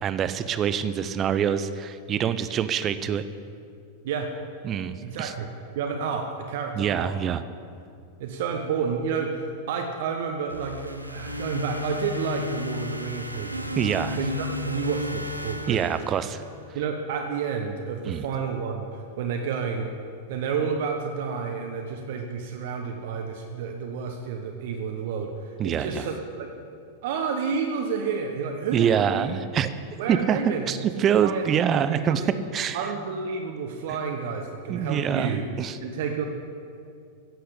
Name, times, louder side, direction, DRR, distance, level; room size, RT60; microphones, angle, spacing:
voice 1, 0.0-3.2 4.6-5.3 6.8-7.4 13.8-14.2 15.7-16.4 18.0-18.2 25.6-26.0 28.7-29.7 30.1-30.4 30.7-32.2 32.5-32.8 34.7-35.8, right 8 dB, 30° right, 12 dB, 0.7 m, -25 dB
voice 2, 5.0-5.5 5.7-7.2 8.2-13.8 14.2-15.9 16.7-19.9 20.3-26.5 27.0-29.3 30.0-30.8 31.1-32.3 32.7-35.4 35.8-36.3, right 6 dB, 55° right, 3 dB, 1.1 m, -30 dB
sound 1, 10.5-16.7, left 2 dB, 90° right, 1.0 m, -34 dB
15.0 x 7.9 x 8.4 m, 2.4 s
figure-of-eight pair, 90°, 0 cm